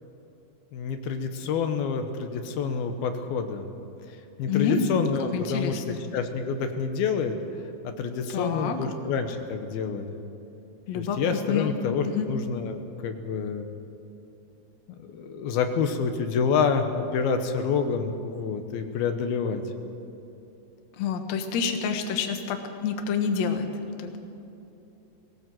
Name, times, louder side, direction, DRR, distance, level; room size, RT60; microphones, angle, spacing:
voice 1, 0.7-3.7 4.4-7.4 7.8-10.2 11.0-13.7 15.0-19.6, left 5 dB, 75° left, 6 dB, 2.9 m, -28 dB
voice 2, 4.5-4.9 5.3-6.0 8.3-8.8 10.9-11.2 11.5-11.7 12.0-12.3 21.0-23.7 24.0-24.2, left 6 dB, 55° left, 5 dB, 2.2 m, -27 dB
20.5 x 18.0 x 7.8 m, 2.9 s
omnidirectional pair, 4.5 m